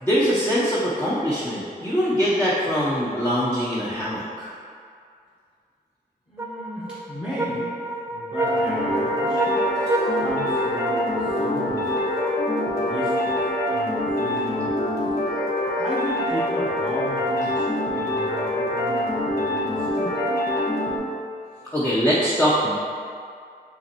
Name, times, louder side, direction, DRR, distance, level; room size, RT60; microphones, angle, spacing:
voice 1, 0.0-4.5 21.7-22.7, equal, 10° left, -8 dB, 0.8 m, -22 dB
voice 2, 6.3-7.7 8.1-9.7 10.2-12.0 12.8-13.4 13.6-15.0 15.8-20.2, equal, 30° left, -11 dB, 1.4 m, -35 dB
sound 1, 6.4-13.9, right 1 dB, 15° right, 0.4 m, -30 dB
sound 2, 8.3-21.0, left 1 dB, 75° left, 1.3 m, -25 dB
5.6 x 3.1 x 2.9 m, 2.3 s
cardioid pair, 60°, 16 cm